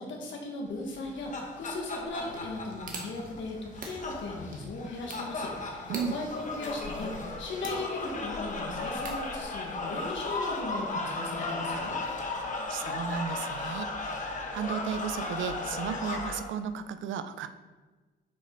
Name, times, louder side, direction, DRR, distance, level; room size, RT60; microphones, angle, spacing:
voice 1, 0.0-12.0, left 2 dB, 70° left, 0 dB, 1.8 m, -38 dB
sound 1, 0.9-16.4, left 2 dB, 40° left, 1.3 m, -36 dB
sound 2, 2.3-10.0, right 2 dB, 45° right, 1.6 m, -47 dB
voice 2, 12.7-13.9 14.1-17.5, right 7 dB, 75° right, 10 dB, 0.6 m, -34 dB
8.3 x 5.0 x 4.0 m, 1.3 s
cardioid pair, 90°, 20 cm